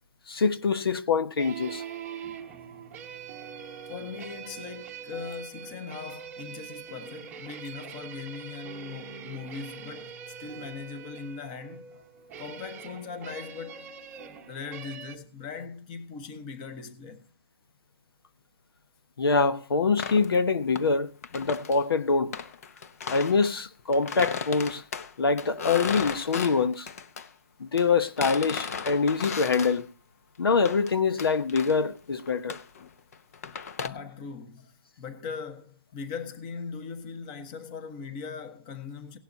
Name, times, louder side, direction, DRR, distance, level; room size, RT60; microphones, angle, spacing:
voice 1, 0.3-1.8 19.2-22.3 23.1-24.8 25.2-26.9 27.6-29.9 30.4-32.6, left 4 dB, 70° left, 1.0 m, -25 dB
sound 1, 1.4-15.2, right 7 dB, 10° right, 1.0 m, -43 dB
voice 2, 3.9-12.0 12.4-13.9 14.5-17.3 33.8-34.7 35.0-39.2, left 5 dB, 20° left, 1.2 m, -40 dB
sound 2, 20.0-20.9 21.2-21.8 22.3-23.5 23.9-27.3 27.8-29.8 30.6-30.9 31.2-31.8 32.2-33.9, left 6 dB, 40° left, 0.8 m, -36 dB
17.5 x 11.5 x 2.7 m
hypercardioid pair, 165°, 13 cm